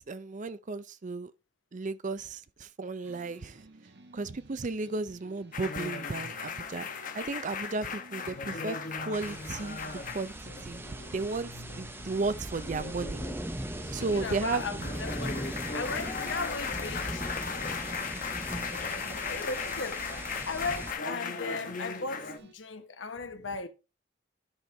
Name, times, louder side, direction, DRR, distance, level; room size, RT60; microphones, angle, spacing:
voice 1, 0.1-1.3 1.7-3.6 4.1-6.9 7.2-10.8 11.1-13.2 13.9-14.9, right 3 dB, 40° right, 0.5 m, -34 dB
sound 1, 3.0-22.5, right 2 dB, 65° right, 1.3 m, -54 dB
sound 2, 5.5-22.4, left 5 dB, 45° left, 1.0 m, -38 dB
sound 3, 9.1-20.9, right 1 dB, 10° right, 0.8 m, -39 dB
voice 2, 14.1-17.2 17.5-17.8 18.4-23.7, left 4 dB, 80° left, 1.1 m, -38 dB
12.5 x 4.5 x 3.3 m
head